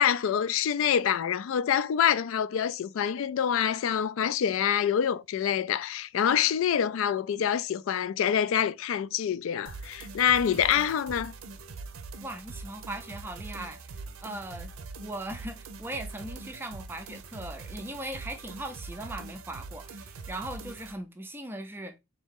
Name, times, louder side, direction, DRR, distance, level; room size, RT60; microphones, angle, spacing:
voice 1, 0.0-11.3, left 8 dB, 70° left, 0.3 m, -26 dB
sound 1, 9.7-21.0, right 3 dB, 85° right, 0.6 m, -43 dB
voice 2, 12.2-14.7 15.0-21.9, right 1 dB, 10° right, 0.4 m, -39 dB
4.0 x 2.7 x 3.6 m
head